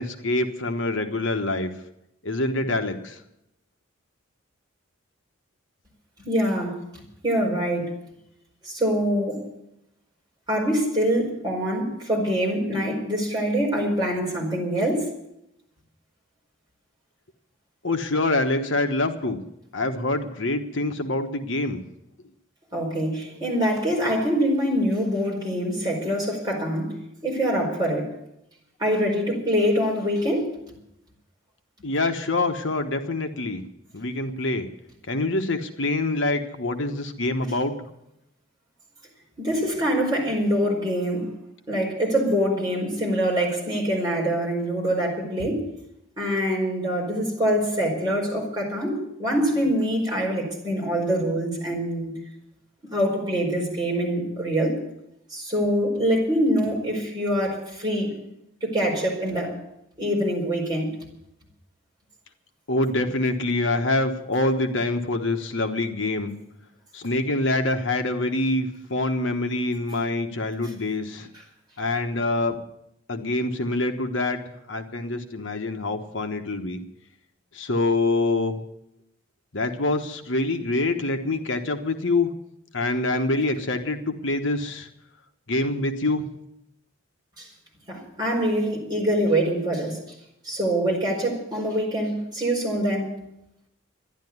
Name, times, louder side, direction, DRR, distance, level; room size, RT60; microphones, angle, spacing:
voice 1, 0.0-1.7 2.2-3.2 17.8-19.4 19.7-21.8 31.8-33.6 33.9-34.7 35.1-37.7 62.7-66.3 66.9-71.3 71.8-72.6 73.1-76.8 77.5-78.6 79.5-82.3 82.7-84.9 85.5-86.3, left 2 dB, 65° left, 6 dB, 1.2 m, -25 dB
voice 2, 6.2-7.9 8.6-9.5 10.5-15.1 22.7-28.1 28.8-30.5 39.4-41.3 41.7-45.7 46.2-52.1 52.9-54.8 55.3-58.2 58.6-59.6 60.0-61.0 87.4-87.5 87.9-90.0 90.4-93.1, equal, 20° right, -3 dB, 4.7 m, -24 dB
13.0 x 11.0 x 9.4 m, 0.82 s
head